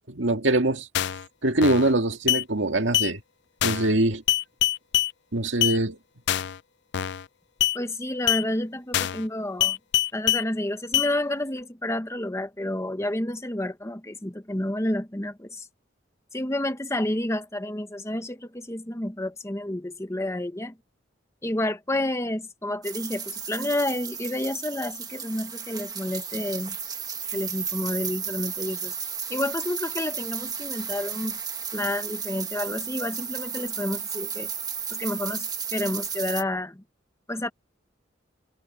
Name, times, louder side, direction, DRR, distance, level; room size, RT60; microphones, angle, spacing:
voice 1, 0.1-0.9 1.4-3.2 3.6-4.2 5.3-6.0, right 2 dB, 75° right, 2.0 m, -23 dB
sound 1, 0.9-1.2 1.6-1.9 2.3-2.4 2.9-3.1 3.6-3.9 4.3-5.1 5.6-5.8 6.3-6.6 6.9-7.2 7.6-7.8 8.3-8.4 8.9-9.2 9.6-10.4 10.9-11.1, left 12 dB, 65° left, 0.4 m, -24 dB
voice 2, 7.7-9.8 10.1-15.7 16.3-20.7 21.4-26.8 27.3-28.9 29.3-31.4 31.7-34.5 34.9-36.8 37.3-37.5, left 1 dB, 15° left, 1.2 m, -30 dB
sound 2, 22.8-36.4, right 7 dB, 20° right, 1.6 m, -33 dB
head